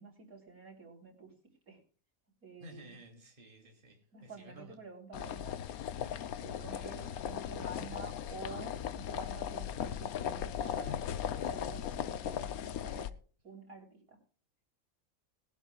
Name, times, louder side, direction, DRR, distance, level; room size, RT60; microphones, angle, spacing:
voice 1, 0.0-1.3 1.7-1.8 2.4-3.0 4.1-5.6 6.4-13.1 13.4-14.2, right 3 dB, 85° right, 0 dB, 4.2 m, -49 dB
voice 2, 2.6-4.8 5.9-6.3 6.7-7.2, equal, 35° right, 3 dB, 3.1 m, -54 dB
sound 1, 5.1-13.1, left 9 dB, 90° left, 1.2 m, -38 dB
19.5 x 11.5 x 2.4 m, 0.41 s
omnidirectional pair, 1.5 m